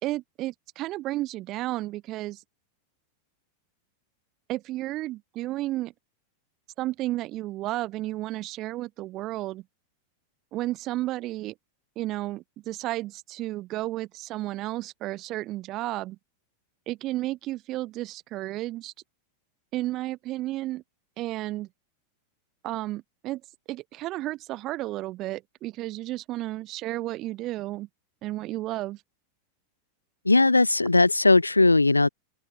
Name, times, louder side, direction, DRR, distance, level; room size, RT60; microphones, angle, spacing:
voice 1, 0.0-2.4 4.5-5.9 6.8-9.6 10.5-11.5 12.0-16.2 16.9-18.9 19.7-20.8 21.2-21.7 22.6-23.4 23.7-27.9 28.2-29.0, right 16 dB, 35° right, 5.8 m, -32 dB
voice 2, 30.3-32.1, left 2 dB, 80° left, 1.8 m, -19 dB
open air
figure-of-eight pair, 90°, 0 cm